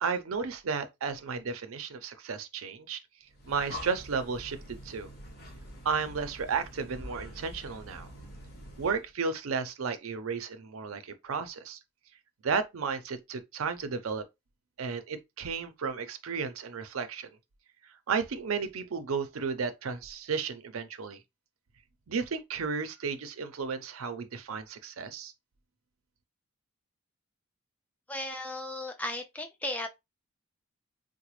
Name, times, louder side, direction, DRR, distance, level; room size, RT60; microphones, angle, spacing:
voice 1, 0.0-3.0 3.5-5.1 5.8-8.1 8.8-11.8 12.4-14.2 14.8-17.3 18.1-21.2 22.1-25.3, right 5 dB, 75° right, 0.5 m, -33 dB
Breathing, 3.3-9.1, left 1 dB, 45° left, 1.1 m, -45 dB
voice 2, 28.1-29.9, left 1 dB, 5° left, 0.3 m, -35 dB
3.9 x 2.1 x 3.0 m
head